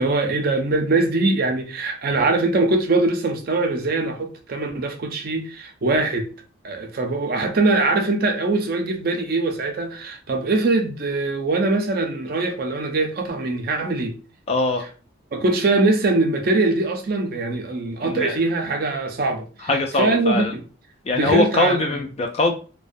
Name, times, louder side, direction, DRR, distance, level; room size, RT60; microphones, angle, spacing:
voice 1, 0.0-6.3 6.6-14.1 15.3-19.7 20.0-20.6 21.1-22.0, right 2 dB, 45° right, 0.4 m, -22 dB
voice 2, 14.5-14.8 18.0-18.3 19.6-20.5 21.1-22.5, left 2 dB, 30° left, 0.3 m, -21 dB
2.4 x 2.1 x 2.5 m
head